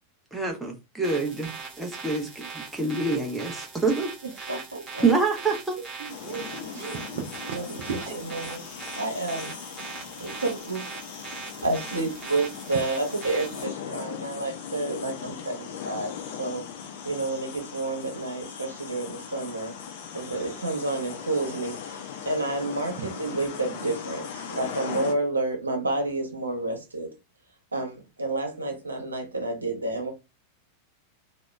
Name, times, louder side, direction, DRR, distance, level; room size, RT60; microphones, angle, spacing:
voice 1, 0.3-2.5 2.7-4.1 5.0-5.8, right 3 dB, 5° right, 0.6 m, -26 dB
sound 1, 1.0-13.6, right 5 dB, 25° right, 0.9 m, -40 dB
voice 2, 4.5-5.0 7.5-8.6 9.0-9.6 10.2-10.8 11.6-16.6 17.0-19.8 20.1-27.1 27.7-30.1, right 2 dB, 80° right, 0.8 m, -30 dB
voice 3, 6.0-8.2 8.4-8.5 10.2-10.4 23.0-23.1, right 7 dB, 50° right, 0.4 m, -37 dB
sound 2, 6.1-25.1, left 8 dB, 55° left, 0.5 m, -39 dB
2.8 x 2.0 x 2.3 m
figure-of-eight pair, 90°, 0 cm